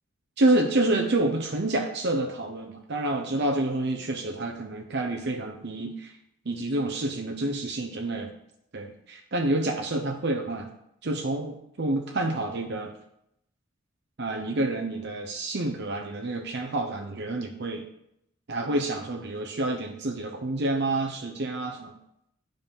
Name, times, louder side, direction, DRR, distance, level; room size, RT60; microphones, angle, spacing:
voice 1, 0.4-6.1 6.5-8.3 8.7-10.7 11.0-12.9 14.2-17.8 18.5-21.9, right 2 dB, 50° right, 3 dB, 0.8 m, -28 dB
9.8 x 5.2 x 5.5 m, 0.77 s
head